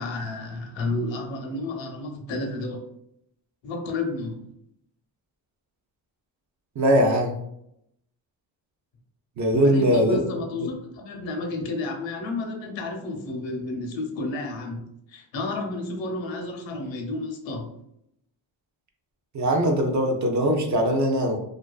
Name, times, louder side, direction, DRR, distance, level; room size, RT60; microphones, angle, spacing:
voice 1, 0.0-2.8 3.6-4.5 9.5-17.7, left 2 dB, 80° left, 2 dB, 0.7 m, -31 dB
voice 2, 6.8-7.3 9.4-10.2 10.6-10.7 19.3-21.4, equal, 45° right, 3 dB, 0.4 m, -21 dB
2.4 x 2.3 x 2.2 m, 0.77 s
cardioid pair, 110°, 44 cm